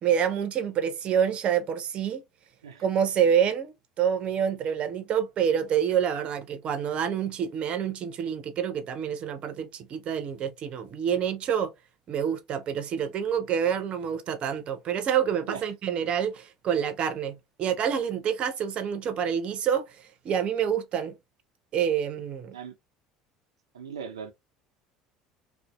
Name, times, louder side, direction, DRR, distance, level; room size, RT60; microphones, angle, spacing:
voice 1, 0.0-2.2 2.8-11.7 12.1-19.9 20.2-21.1 21.7-22.6, right 8 dB, 50° right, 0.6 m, -27 dB
voice 2, 23.7-24.3, right 7 dB, 90° right, 0.4 m, -38 dB
2.6 x 2.4 x 2.3 m
hypercardioid pair, 70°, 2 cm